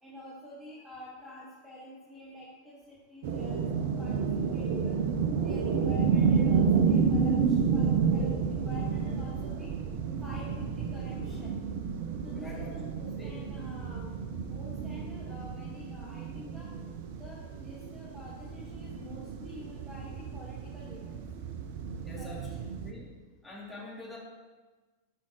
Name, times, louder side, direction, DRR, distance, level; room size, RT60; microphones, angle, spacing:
voice 1, 0.0-3.6 4.0-4.2 4.5-5.0 5.4-9.7 10.2-11.5 12.2-14.1 14.4-16.7 17.2-21.2 22.2-22.6, left 1 dB, 15° right, -6 dB, 1.7 m, -48 dB
sound 1, 3.2-22.9, right 6 dB, 50° right, 0.7 m, -30 dB
voice 2, 12.3-13.3 22.0-23.1 23.4-24.2, left 2 dB, 5° left, -6 dB, 2.8 m, -46 dB
14.0 x 5.6 x 3.1 m, 1.3 s
figure-of-eight pair, 90°, 0 cm